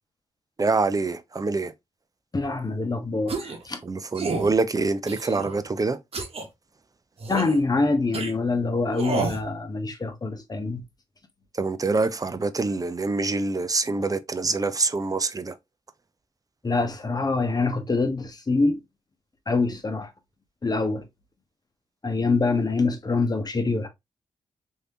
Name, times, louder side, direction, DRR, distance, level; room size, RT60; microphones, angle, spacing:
voice 1, 0.6-1.7 3.8-6.0 11.5-15.6, right 3 dB, 30° right, 0.5 m, -25 dB
voice 2, 2.3-3.8 7.3-10.8 16.6-18.8 19.5-20.1 20.6-21.0 22.0-23.9, left 3 dB, 35° left, 1.0 m, -25 dB
sound 1, 3.3-3.6 4.1-4.5 5.1-5.6 6.1-6.4 7.2-7.6 8.1-8.3 9.0-9.4, right 3 dB, 60° right, 1.0 m, -30 dB
3.2 x 2.8 x 2.7 m
supercardioid pair, 45°, 11 cm